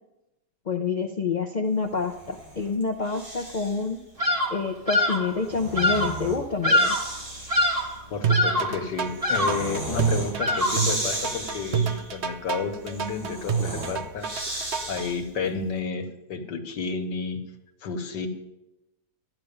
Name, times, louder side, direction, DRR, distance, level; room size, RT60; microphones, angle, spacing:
voice 1, 0.7-4.0 4.5-7.0, left 4 dB, 50° left, 5 dB, 0.5 m, -27 dB
Breathing, 1.9-3.9 5.2-15.4, right 1 dB, 80° right, 4.3 m, -36 dB
Bird vocalization bird call bird song, 4.2-4.6 4.9-5.3 5.8-6.2 6.6-7.2 7.5-8.0 8.3-8.8 9.2-9.7 10.4-10.9, left 1 dB, 20° right, 1.3 m, -24 dB
voice 2, 8.1-17.4 17.8-18.3, left 5 dB, 75° left, 5 dB, 1.9 m, -31 dB
sound 1, 8.2-15.0, right 7 dB, 55° right, 0.8 m, -28 dB
13.5 x 10.5 x 5.3 m, 0.94 s
omnidirectional pair, 1.9 m